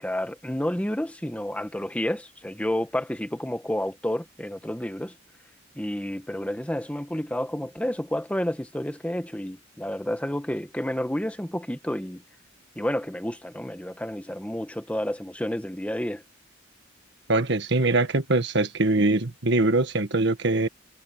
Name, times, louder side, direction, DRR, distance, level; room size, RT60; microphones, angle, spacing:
voice 1, 0.0-5.1 5.8-12.2 12.8-16.2, left 1 dB, 5° left, 1.3 m, -30 dB
voice 2, 17.3-20.7, right 2 dB, 60° right, 1.6 m, -22 dB
head